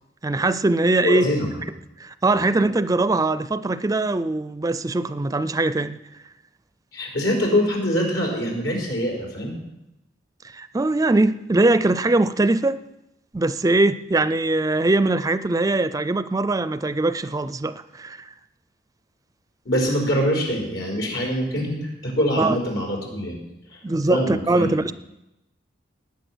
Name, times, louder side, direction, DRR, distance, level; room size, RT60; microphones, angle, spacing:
voice 1, 0.2-1.3 2.0-6.0 10.5-12.8 13.3-18.3 22.4-22.6 23.8-24.9, right 2 dB, 20° right, 0.4 m, -21 dB
voice 2, 1.0-1.6 2.4-2.5 6.9-9.5 19.6-23.4 23.7-24.7, equal, 90° left, 4.8 m, -24 dB
19.0 x 8.4 x 6.2 m
head